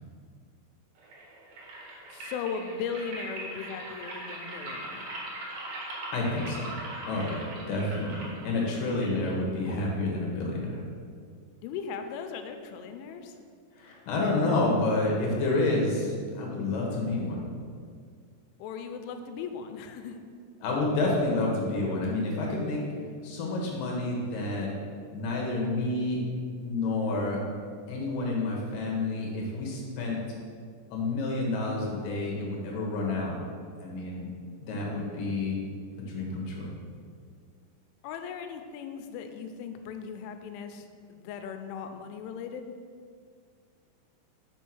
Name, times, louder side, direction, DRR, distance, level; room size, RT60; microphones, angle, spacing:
sound 1, 1.0-10.0, right 1 dB, 75° right, 1.6 m, -41 dB
voice 1, 2.1-5.1 11.6-13.4 18.6-20.2 38.0-42.8, left 6 dB, 90° left, 7 dB, 3.1 m, -38 dB
voice 2, 6.1-6.7 7.1-10.8 13.7-17.4 20.6-22.8 23.2-24.7 25.1-26.2 26.6-27.4 27.9-30.2 30.9-33.3 33.8-34.3 34.6-35.6 36.1-36.7, left 2 dB, 70° left, -2 dB, 2.2 m, -29 dB
5.7 x 5.5 x 6.1 m, 2.1 s
omnidirectional pair, 5.5 m